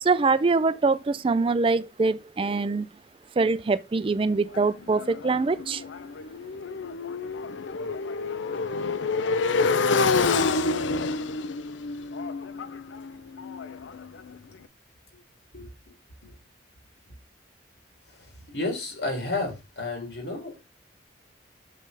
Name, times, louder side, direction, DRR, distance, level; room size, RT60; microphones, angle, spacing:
voice 1, 0.0-2.9 3.4-5.8, right 3 dB, 30° right, 0.4 m, -24 dB
Motorcycle, 4.5-14.4, left 4 dB, 85° left, 0.5 m, -28 dB
voice 2, 18.1-20.7, left 2 dB, 70° left, 3.0 m, -32 dB
7.6 x 5.3 x 3.3 m
head